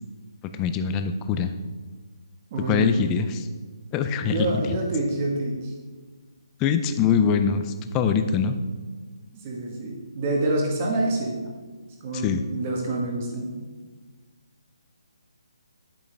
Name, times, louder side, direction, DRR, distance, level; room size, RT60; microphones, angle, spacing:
voice 1, 0.6-1.6 2.7-3.5 3.9-4.6 6.6-8.6 12.1-12.4, left 7 dB, 10° left, 8 dB, 0.3 m, -23 dB
voice 2, 2.5-2.9 4.2-5.7 9.4-11.4 12.0-13.5, right 2 dB, 20° right, 0 dB, 1.3 m, -27 dB
8.8 x 8.6 x 3.3 m, 1.4 s
hypercardioid pair, 170°, 2 cm